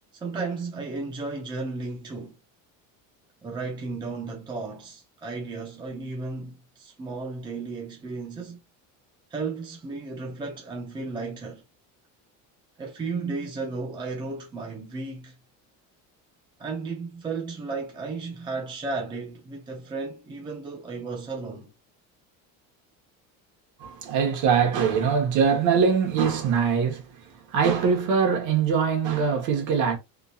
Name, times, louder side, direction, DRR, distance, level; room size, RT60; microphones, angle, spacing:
voice 1, 0.1-2.3 3.4-8.6 9.3-11.6 12.8-15.3 16.6-21.7, right 3 dB, 15° right, 0.6 m, -34 dB
voice 2, 23.8-30.0, right 6 dB, 55° right, 1.4 m, -23 dB
3.7 x 2.7 x 2.5 m
cardioid pair, 155°, 35 cm